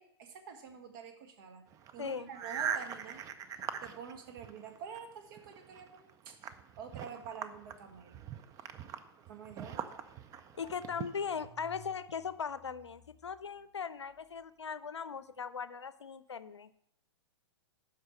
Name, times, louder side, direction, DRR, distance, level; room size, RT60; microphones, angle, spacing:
voice 1, 0.0-1.6 1.9-3.2 3.8-6.4 6.8-8.2 9.3-10.0, right 6 dB, 50° right, 5 dB, 1.5 m, -47 dB
sound 1, 1.7-5.0 5.3-11.5, right 8 dB, 25° right, 0.5 m, -42 dB
voice 2, 2.0-2.3 10.6-16.7, left 6 dB, 80° left, 15 dB, 0.5 m, -39 dB
Car / Engine starting, 8.9-9.0 9.3-14.5, left 2 dB, 10° left, 3.2 m, -60 dB
8.0 x 5.8 x 6.0 m, 0.75 s
figure-of-eight pair, 110°, 14 cm